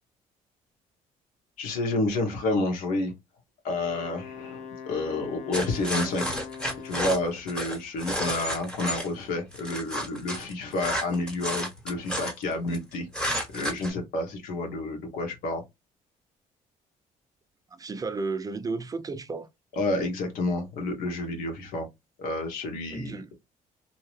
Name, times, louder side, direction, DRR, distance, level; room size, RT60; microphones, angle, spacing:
voice 1, 1.6-3.1 3.6-6.3 6.8-13.1 13.5-15.6 19.7-21.9 22.2-23.2, left 2 dB, 90° left, 1.2 m, -30 dB
Wind instrument woodwind instrument, 3.7-7.5, left 6 dB, 60° left, 0.6 m, -42 dB
sound 1, 5.5-9.1 9.5-12.8 13.1-13.9, equal, 5° left, 1.0 m, -31 dB
voice 2, 17.7-19.5 22.9-23.4, right 3 dB, 25° right, 0.4 m, -33 dB
2.7 x 2.1 x 3.1 m
cardioid pair, 95°, 15 cm